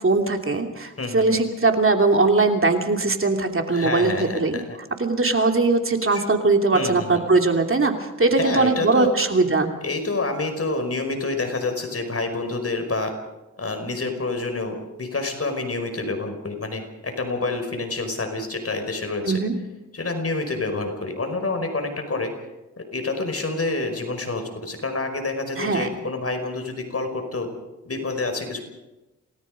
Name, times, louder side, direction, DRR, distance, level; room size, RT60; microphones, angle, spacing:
voice 1, 0.0-4.6 5.0-9.7 19.2-19.5 25.6-25.9, right 3 dB, 45° right, 4 dB, 2.9 m, -20 dB
voice 2, 1.0-1.4 3.7-4.8 6.1-6.2 6.7-7.2 8.4-9.1 9.8-13.1 13.6-19.4 19.9-22.3 22.8-27.5 27.8-28.6, left 3 dB, 50° left, 5 dB, 5.3 m, -28 dB
28.0 x 19.0 x 5.3 m, 1.0 s
cardioid pair, 75°, 30 cm